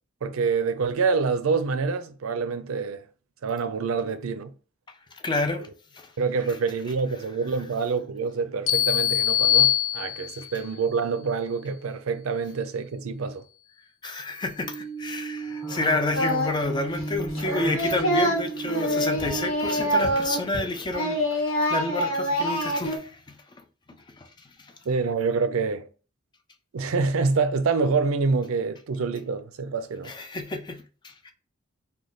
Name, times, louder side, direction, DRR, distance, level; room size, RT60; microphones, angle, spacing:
voice 1, 0.2-3.0 3.4-4.5 6.2-13.4 24.9-25.9 26.7-30.1, right 4 dB, 80° right, 0.4 m, -26 dB
voice 2, 5.1-5.7 5.9-6.1 14.0-23.4 24.2-24.3 24.6-24.7 30.0-31.3, left 2 dB, 20° left, 0.4 m, -30 dB
sound 1, 8.7-10.6, left 11 dB, 90° left, 0.6 m, -22 dB
sound 2, 14.6-21.0, right 2 dB, 10° right, 0.9 m, -36 dB
Singing, 16.1-16.7 17.0-20.6 20.9-23.0, equal, 70° left, 1.1 m, -26 dB
3.2 x 2.2 x 3.8 m
head